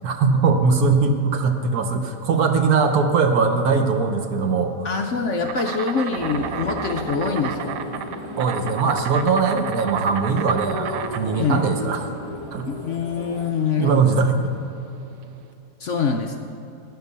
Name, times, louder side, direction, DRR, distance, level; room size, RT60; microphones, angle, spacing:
voice 1, 0.0-4.9 8.4-12.1 12.5-12.7 13.8-14.4, right 4 dB, 65° right, 6 dB, 1.3 m, -20 dB
voice 2, 4.8-7.8 11.3-11.6 12.7-14.0 15.8-16.4, left 5 dB, 60° left, 3 dB, 0.8 m, -24 dB
Insect, 5.4-15.4, right 9 dB, 90° right, 1.2 m, -33 dB
sound 1, 6.1-13.5, left 1 dB, 25° right, 1.8 m, -35 dB
11.5 x 8.1 x 6.7 m, 2.8 s
omnidirectional pair, 1.8 m